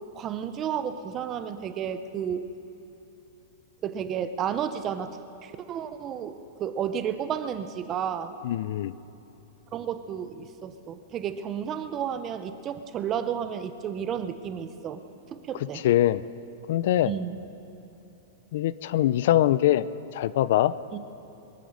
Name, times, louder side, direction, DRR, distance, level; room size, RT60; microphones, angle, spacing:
voice 1, 0.1-2.5 3.8-8.4 9.7-15.0 15.3-15.8 17.1-17.4 20.9-21.0, right 8 dB, 20° right, 10 dB, 0.6 m, -32 dB
voice 2, 8.4-8.9 15.7-16.2 16.7-17.1 18.5-19.8 20.1-20.7, left 13 dB, 55° left, 17 dB, 0.4 m, -23 dB
24.0 x 9.2 x 6.4 m, 3.0 s
supercardioid pair, 170°, 0 cm